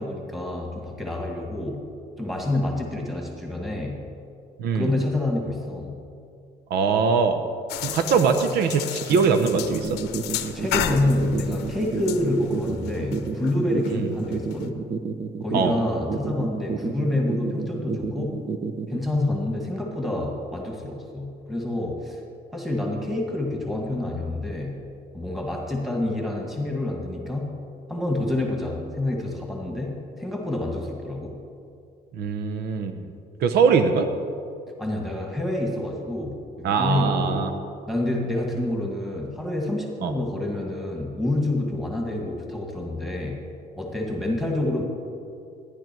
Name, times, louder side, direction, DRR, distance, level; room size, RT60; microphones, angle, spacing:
voice 1, 0.0-1.9 2.2-4.0 4.7-6.0 10.5-14.8 15.4-18.4 18.9-22.2 22.5-24.9 25.1-27.6 27.9-31.4 34.8-37.5 37.9-43.4 43.7-44.8, left 1 dB, ahead, -1 dB, 2.0 m, -27 dB
voice 2, 4.6-4.9 6.7-7.4 7.8-10.0 13.9-14.1 15.5-15.7 32.1-33.1 33.4-34.1 36.6-37.5 40.0-40.1, right 5 dB, 75° right, 8 dB, 0.9 m, -22 dB
sound 1, 7.7-14.7, left 11 dB, 85° left, 0.8 m, -33 dB
sound 2, 9.0-19.0, right 5 dB, 35° right, 0.8 m, -30 dB
14.5 x 10.5 x 4.6 m, 2.4 s
cardioid pair, 110°, 17 cm